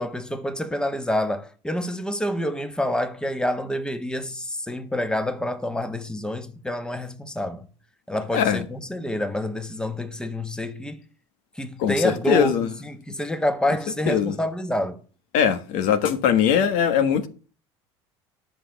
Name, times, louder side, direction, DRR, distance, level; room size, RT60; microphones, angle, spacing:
voice 1, 0.0-7.7 8.1-11.0 11.6-12.6 12.8-15.0, left 1 dB, 5° left, 1.3 m, -27 dB
voice 2, 8.3-8.6 11.8-12.7 14.1-14.4 15.3-17.3, left 8 dB, 65° left, 1.4 m, -21 dB
11.0 x 6.2 x 5.9 m
supercardioid pair, 85°, 14 cm